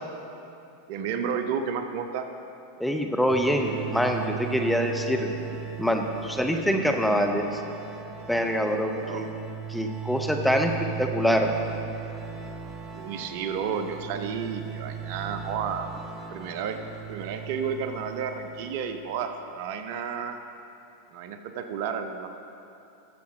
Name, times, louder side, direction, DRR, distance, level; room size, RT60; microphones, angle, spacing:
voice 1, 0.9-2.3 9.0-9.2 12.9-15.9 16.3-16.8 17.1-20.4 21.1-22.3, right 7 dB, 55° right, 7 dB, 0.7 m, -31 dB
voice 2, 2.8-5.3 5.8-7.6 8.3-9.2 9.7-10.7 11.0-11.5, equal, ahead, 3 dB, 0.9 m, -25 dB
sound 1, 3.3-19.2, right 8 dB, 30° right, 1.3 m, -38 dB
13.0 x 6.8 x 5.1 m, 2.8 s
hypercardioid pair, 90°, 0 cm